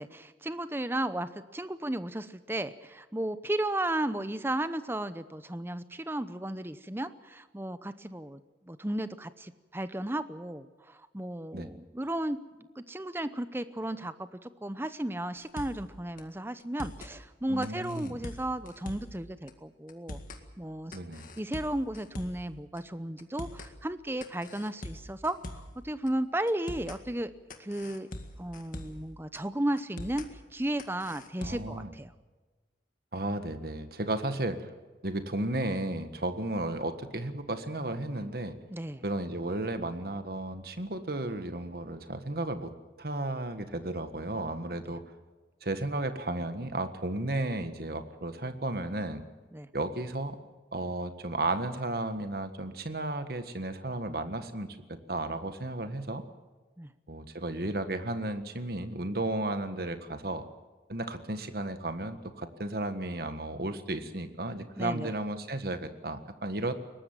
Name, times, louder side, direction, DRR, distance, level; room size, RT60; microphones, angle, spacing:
voice 1, 0.0-8.4 8.7-20.2 20.6-21.0 21.4-27.3 27.6-28.1 28.4-30.3 30.5-32.1 38.7-39.0 49.5-49.7 56.8-56.9 64.8-65.1, right 1 dB, 15° right, 12 dB, 0.8 m, -34 dB
sound 1, 15.4-15.9 16.2-16.3 16.6-17.1 17.6-19.2 19.5-19.6 19.9-20.4 20.9-22.5 22.8-22.9 23.2-23.7 24.2-25.8 26.1-26.2 26.5-27.0 27.5-29.1 29.4-29.5 29.8-30.3 30.8-31.8, left 1 dB, 50° left, 1.9 m, -43 dB
voice 2, 17.5-18.2 20.9-21.3 31.4-31.9 33.1-34.7 35.0-38.6 39.0-42.7 43.0-45.0 45.6-49.2 49.7-50.4 50.7-56.2 57.1-60.4 60.9-66.7, right 2 dB, 55° right, 9 dB, 1.6 m, -34 dB
22.5 x 19.0 x 7.5 m, 1.3 s
head